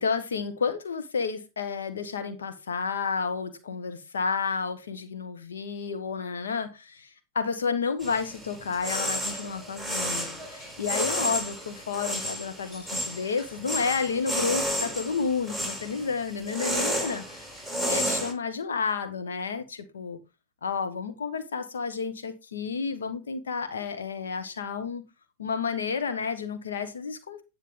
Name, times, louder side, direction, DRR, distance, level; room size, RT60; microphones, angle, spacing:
voice 1, 0.0-7.1 7.3-17.5 17.9-20.2 20.6-25.0 25.4-27.4, left 5 dB, 70° left, 1.1 m, -31 dB
sound 1, 8.0-18.3, equal, 15° left, 4.6 m, -32 dB
10.0 x 6.6 x 3.5 m
figure-of-eight pair, 90°, 0 cm